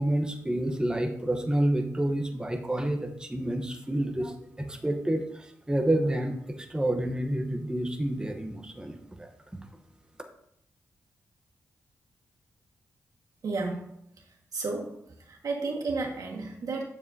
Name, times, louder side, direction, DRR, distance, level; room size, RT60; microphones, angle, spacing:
voice 1, 0.0-9.3, right 1 dB, 15° right, 3 dB, 1.0 m, -29 dB
voice 2, 13.4-13.8 14.5-15.0 15.2-16.8, right 3 dB, 65° right, 0 dB, 1.7 m, -32 dB
7.3 x 7.0 x 2.8 m, 0.75 s
supercardioid pair, 50°, 6 cm